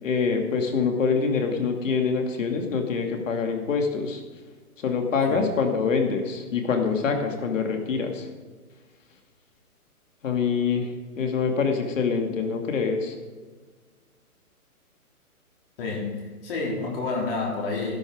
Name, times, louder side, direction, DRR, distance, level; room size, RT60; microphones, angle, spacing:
voice 1, 0.0-4.2 4.8-8.3 10.2-10.9 11.2-13.1, left 5 dB, 55° left, 4 dB, 2.5 m, -25 dB
voice 2, 15.8-18.0, left 3 dB, 40° left, -2 dB, 3.8 m, -29 dB
13.5 x 12.0 x 5.0 m, 1.4 s
hypercardioid pair, 160°, 44 cm